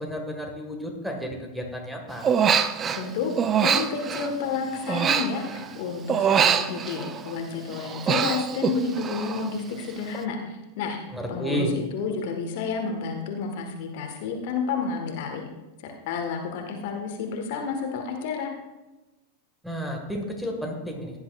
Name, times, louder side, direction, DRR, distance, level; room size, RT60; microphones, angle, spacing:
voice 1, 0.0-2.3 11.1-11.7 19.6-21.2, equal, ahead, 2 dB, 1.8 m, -31 dB
Human voice, 2.2-3.1 3.4-5.8 6.1-7.4 7.7-9.5 9.8-10.2, right 7 dB, 25° right, 0.6 m, -24 dB
voice 2, 2.9-3.3 3.6-11.0 11.3-15.4 15.8-18.5, left 5 dB, 50° left, 3 dB, 1.6 m, -30 dB
16.0 x 10.5 x 2.5 m, 1.1 s
figure-of-eight pair, 90°, 0 cm